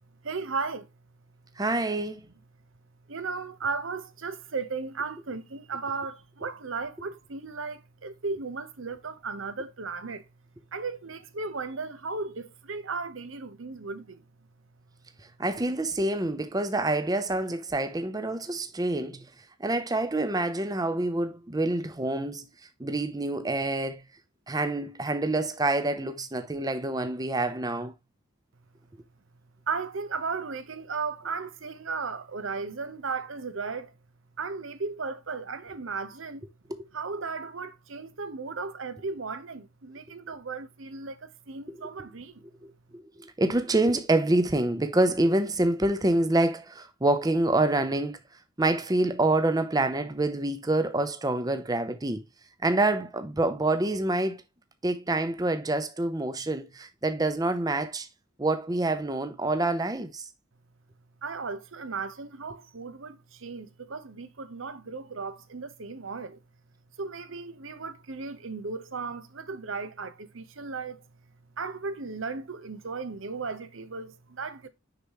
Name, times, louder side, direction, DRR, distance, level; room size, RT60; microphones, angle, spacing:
voice 1, 0.2-0.9 3.1-10.2 10.7-14.2 29.7-33.9 34.4-36.5 36.9-42.4 61.2-66.4 67.0-71.0 71.6-74.7, right 4 dB, 75° right, 0.9 m, -35 dB
voice 2, 1.6-2.2 15.4-19.2 19.6-22.5 22.8-24.0 24.5-27.9 36.7-36.9 41.7-41.9 42.6-42.7 43.2-48.2 48.6-52.2 52.6-54.4 54.8-58.1 58.4-60.2, right 2 dB, 20° right, 0.7 m, -27 dB
6.7 x 5.7 x 3.0 m
head